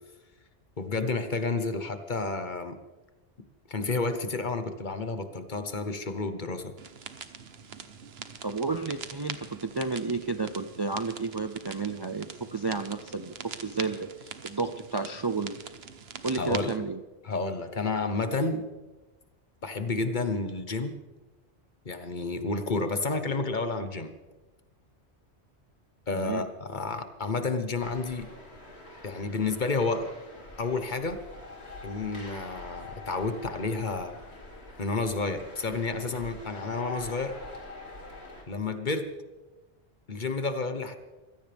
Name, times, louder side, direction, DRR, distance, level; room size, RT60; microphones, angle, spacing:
voice 1, 0.8-2.8 3.7-6.7 16.3-16.8 17.2-18.7 19.6-21.0 21.8-24.1 26.1-28.3 29.0-30.1 30.6-31.2 31.8-34.2 34.8-37.3 38.5-39.1 40.1-41.0, left 3 dB, 45° left, 8 dB, 1.2 m, -30 dB
sound 1, 6.8-16.8, right 6 dB, 70° right, 1.2 m, -43 dB
voice 2, 8.4-9.4 9.6-14.1 14.4-15.6 16.2-17.0 26.1-26.5, right 4 dB, 30° right, 8 dB, 0.5 m, -31 dB
sound 2, 27.8-38.4, left 2 dB, 80° left, 3.2 m, -45 dB
23.5 x 16.5 x 3.5 m, 1.2 s
omnidirectional pair, 1.1 m